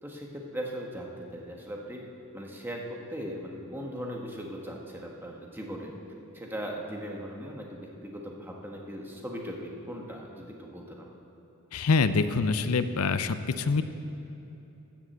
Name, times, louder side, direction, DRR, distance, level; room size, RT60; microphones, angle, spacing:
voice 1, 0.0-2.0 2.3-5.9 6.3-11.1, equal, 10° right, -1 dB, 1.4 m, -39 dB
voice 2, 11.7-13.8, left 4 dB, 90° left, 12 dB, 0.6 m, -25 dB
13.0 x 7.4 x 7.7 m, 3.0 s
head